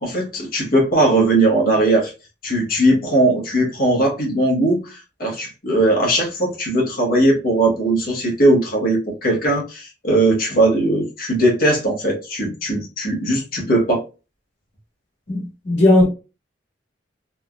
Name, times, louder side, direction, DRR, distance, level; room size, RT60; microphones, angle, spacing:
voice 1, 0.0-2.1 2.4-14.0, right 1 dB, 55° left, 1.1 m, -19 dB
voice 2, 15.3-16.1, left 2 dB, 75° left, 1.7 m, -16 dB
3.4 x 2.2 x 2.3 m
head